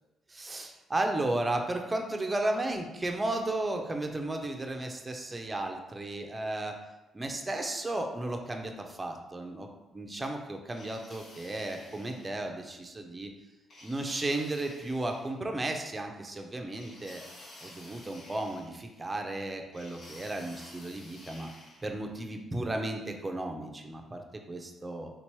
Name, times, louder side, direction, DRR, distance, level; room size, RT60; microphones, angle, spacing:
voice 1, 0.3-6.8 7.1-13.3 13.8-17.2 17.6-21.5 21.8-24.2 24.5-25.1, right 2 dB, 20° right, 3 dB, 0.6 m, -34 dB
sound 1, 10.7-12.5 13.7-15.3 16.7-19.1 19.7-21.9, left 1 dB, 55° left, 1.3 m, -52 dB
3.9 x 2.9 x 4.6 m, 1.0 s
cardioid pair, 90°, 0 cm